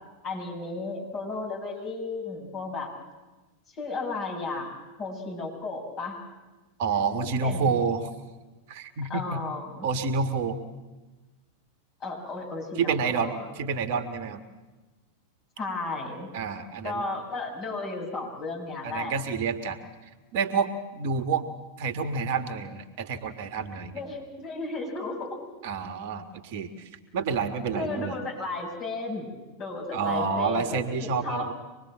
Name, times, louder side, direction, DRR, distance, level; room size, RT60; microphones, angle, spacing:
voice 1, 0.2-2.9 3.8-6.2 7.2-7.8 9.1-9.9 12.0-13.5 15.6-16.3 16.8-19.4 23.9-25.4 27.7-29.3 29.6-31.5, left 3 dB, 35° left, 0 dB, 7.5 m, -34 dB
voice 2, 6.8-8.1 8.7-9.4 9.8-10.6 12.8-14.4 16.3-17.0 18.8-19.8 20.3-21.4 21.8-24.0 25.6-28.2 29.9-31.5, right 5 dB, 50° right, 10 dB, 1.6 m, -29 dB
25.0 x 21.0 x 7.8 m, 1.2 s
figure-of-eight pair, 90°, 0 cm